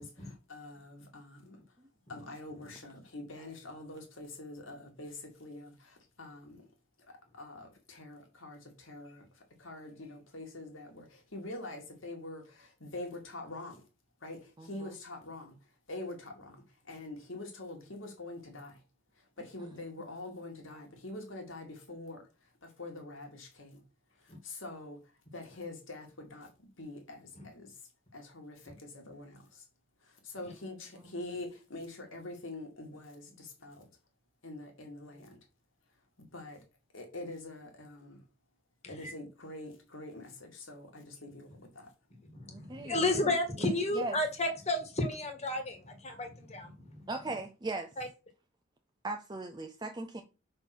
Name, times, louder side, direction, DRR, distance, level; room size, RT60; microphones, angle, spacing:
voice 1, 0.0-1.6 2.1-6.6 7.4-9.2 9.6-13.8 14.2-15.6 15.9-16.6 16.9-18.7 19.4-22.2 22.6-23.8 24.4-25.0 25.3-26.5 26.8-27.7 28.1-29.6 30.2-33.8 34.4-35.4 36.3-36.6 36.9-38.2 38.9-41.9, left 2 dB, 80° left, 2.4 m, -45 dB
voice 2, 14.6-15.0 19.6-19.7 31.0-31.1 42.5-43.3 43.6-44.2 47.1-47.9 49.0-50.2, right 2 dB, 20° right, 0.5 m, -39 dB
voice 3, 42.3-47.0 48.0-48.1, left 2 dB, 35° left, 1.6 m, -33 dB
5.3 x 4.4 x 6.1 m
head